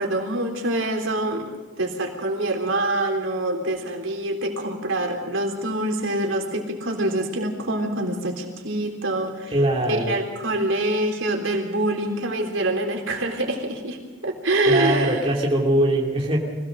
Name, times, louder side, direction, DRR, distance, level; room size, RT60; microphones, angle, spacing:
voice 1, 0.0-1.5 1.8-9.5 10.1-15.2, right 1 dB, 75° right, 2 dB, 3.7 m, -25 dB
voice 2, 9.5-10.1 14.6-16.4, right 1 dB, 30° right, -2 dB, 2.6 m, -21 dB
25.0 x 17.5 x 6.5 m, 1.2 s
head